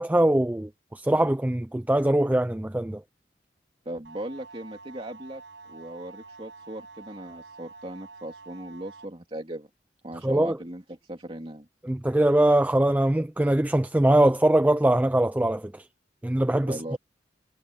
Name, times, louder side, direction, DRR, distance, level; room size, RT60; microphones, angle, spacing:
voice 1, 0.0-3.0 10.2-10.6 11.8-15.9 16.2-17.0, right 1 dB, 10° right, 0.3 m, -22 dB
voice 2, 3.8-5.4 5.7-9.7 10.0-11.7 16.7-17.0, right 1 dB, 30° right, 2.7 m, -38 dB
sound 1, 4.0-9.0, right 3 dB, 75° right, 6.5 m, -47 dB
head